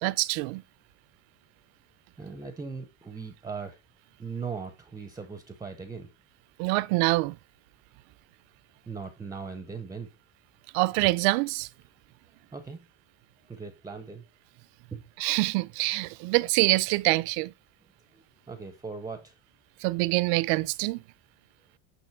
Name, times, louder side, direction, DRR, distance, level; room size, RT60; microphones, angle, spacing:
voice 1, 0.0-0.6 6.6-7.3 10.7-11.7 15.2-17.5 19.8-21.0, right 22 dB, 70° right, 0.5 m, -25 dB
voice 2, 2.2-3.8 4.2-6.1 8.9-10.1 12.5-12.8 13.5-14.2 14.9-15.0 18.1-19.4, right 5 dB, 10° right, 0.5 m, -39 dB
8.9 x 3.0 x 4.5 m
cardioid pair, 145°, 38 cm